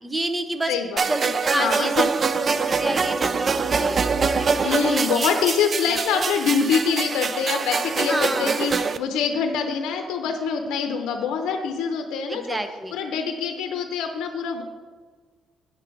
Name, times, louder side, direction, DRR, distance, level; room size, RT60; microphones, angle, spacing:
voice 1, 0.0-0.8 1.1-2.1 2.7-5.3 5.9-6.2 8.1-8.6 12.3-13.0, right 1 dB, 15° right, 8 dB, 0.8 m, -29 dB
voice 2, 0.7-1.3 1.5-2.1 4.6-12.6 12.9-14.6, left 6 dB, 90° left, 5 dB, 0.6 m, -25 dB
sound 1, 1.0-9.0, right 5 dB, 40° right, 0.4 m, -24 dB
8.8 x 3.8 x 5.8 m, 1.4 s
cardioid pair, 90°, 0 cm